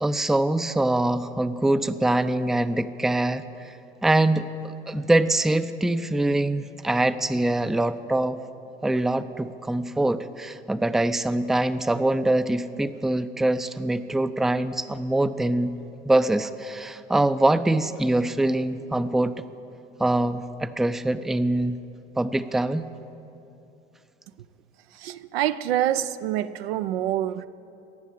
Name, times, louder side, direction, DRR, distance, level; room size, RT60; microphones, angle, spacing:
voice 1, 0.0-3.7 4.0-8.4 8.8-15.7 16.0-19.4 20.0-21.8 22.2-22.9, right 1 dB, ahead, 0.4 m, -24 dB
voice 2, 25.0-27.5, right 12 dB, 75° right, 0.5 m, -26 dB
18.0 x 7.3 x 8.7 m
figure-of-eight pair, 60°, 31 cm